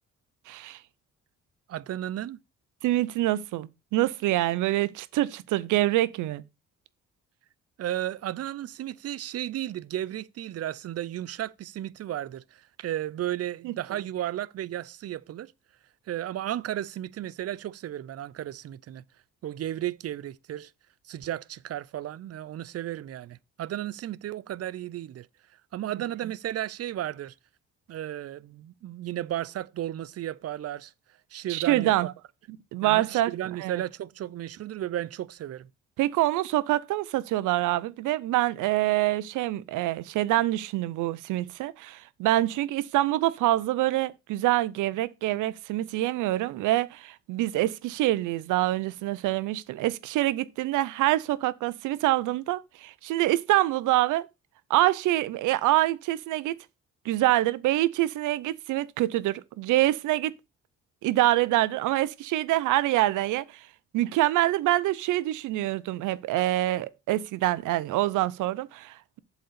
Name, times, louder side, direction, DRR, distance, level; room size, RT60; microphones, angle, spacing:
voice 1, 0.5-0.8 2.8-6.4 13.6-13.7 31.5-32.1 32.7-33.3 33.6-33.8 36.0-54.3 54.7-56.5 57.0-60.3 61.0-63.6 63.9-69.2, right 16 dB, 90° right, 0.7 m, -25 dB
voice 2, 1.7-2.4 7.8-15.5 16.1-19.0 19.4-20.7 21.0-25.3 25.7-27.3 27.9-30.9 31.3-32.1 32.8-35.7, right 12 dB, 55° right, 0.6 m, -34 dB
7.8 x 4.2 x 6.8 m
cardioid pair, 90°, 30 cm